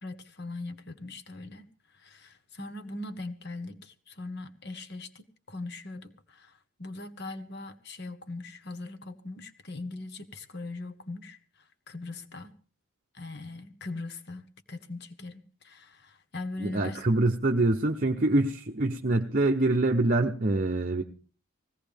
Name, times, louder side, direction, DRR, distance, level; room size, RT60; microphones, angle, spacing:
voice 1, 0.0-1.7 1.9-6.5 6.8-11.4 11.9-12.5 13.1-17.0, left 2 dB, 50° left, 1.3 m, -40 dB
voice 2, 16.6-21.0, right 2 dB, 40° right, 0.8 m, -25 dB
20.5 x 17.0 x 3.5 m
head